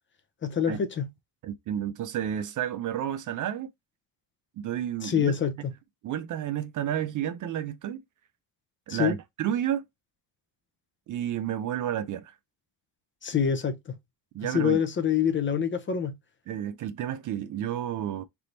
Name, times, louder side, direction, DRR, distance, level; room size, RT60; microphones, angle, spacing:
voice 1, 0.4-1.1 5.0-5.6 8.9-9.2 13.2-14.0 14.5-16.2, left 8 dB, 30° left, 0.7 m, -26 dB
voice 2, 1.4-3.7 4.6-5.3 6.0-8.0 8.9-9.8 11.1-12.3 14.3-14.8 16.5-18.2, right 10 dB, 50° right, 0.5 m, -31 dB
3.4 x 2.9 x 3.9 m
cardioid pair, 140°, 42 cm